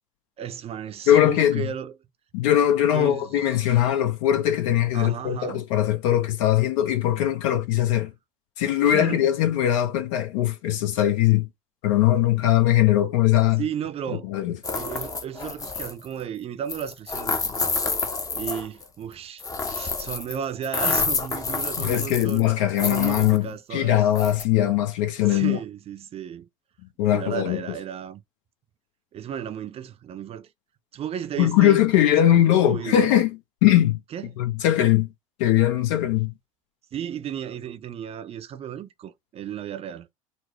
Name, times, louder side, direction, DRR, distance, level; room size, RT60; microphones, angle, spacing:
voice 1, 0.4-1.9 2.9-3.6 4.9-5.6 7.4-7.5 8.8-9.2 13.6-14.3 14.7-17.8 18.3-22.4 22.8-24.0 25.3-26.5 27.1-28.2 29.1-30.5 30.9-31.8 32.3-33.1 34.1-34.5 36.9-40.1, right 9 dB, 35° right, 0.6 m, -34 dB
voice 2, 1.1-1.7 2.3-8.1 8.6-11.5 11.8-13.6 14.2-14.6 21.8-25.6 27.0-27.6 31.4-34.0 34.4-35.1 35.4-36.3, left 12 dB, 65° left, 0.9 m, -21 dB
sound 1, 14.6-16.1 16.7-18.8 19.4-20.4 20.6-22.4 22.8-23.4 24.1-24.4, left 4 dB, 20° left, 0.7 m, -28 dB
4.2 x 2.1 x 3.0 m
hypercardioid pair, 70°, 17 cm